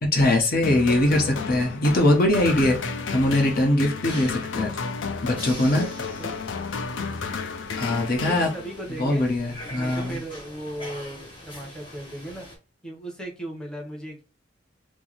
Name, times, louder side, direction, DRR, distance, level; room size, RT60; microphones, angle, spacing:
voice 1, 0.0-2.8 3.1-4.7 5.2-5.9 7.8-8.5 9.0-10.2, left 1 dB, 50° left, 0.9 m, -21 dB
sound 1, 0.6-9.0, left 5 dB, 80° left, 0.5 m, -32 dB
sound 2, 4.0-12.6, left 1 dB, 30° left, 1.3 m, -43 dB
voice 2, 6.0-6.4 8.2-9.2 9.7-12.5 12.8-14.2, right 1 dB, 5° left, 0.9 m, -37 dB
4.4 x 2.0 x 2.9 m
head